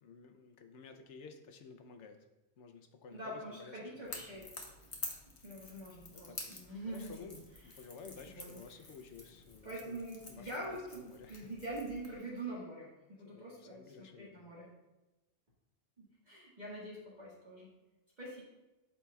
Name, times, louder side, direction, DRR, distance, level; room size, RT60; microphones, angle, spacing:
voice 1, 0.0-2.3 2.6-4.5 5.7-10.0 10.3-11.5 13.2-14.4, left 5 dB, 80° left, 6 dB, 1.0 m, -54 dB
voice 2, 3.1-4.5 5.4-7.3 8.3-8.6 9.6-14.7 16.0-17.7 18.2-18.4, right 1 dB, 40° right, -6 dB, 1.7 m, -45 dB
Crackle / Crack, 4.0-12.2, left 2 dB, 35° left, 1.0 m, -49 dB
12.5 x 4.4 x 2.3 m, 1.0 s
omnidirectional pair, 1.2 m